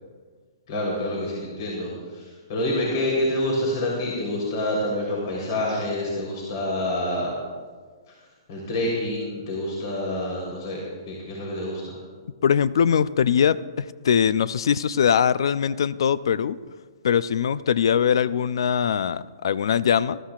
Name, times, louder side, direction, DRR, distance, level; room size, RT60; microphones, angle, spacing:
voice 1, 0.7-7.4 8.1-8.2 8.5-12.0, left 1 dB, 50° left, -3 dB, 3.5 m, -27 dB
voice 2, 12.4-16.6 17.0-20.2, left 8 dB, 75° left, 18 dB, 0.4 m, -22 dB
20.0 x 13.0 x 2.4 m, 1.5 s
hypercardioid pair, 155°, 3 cm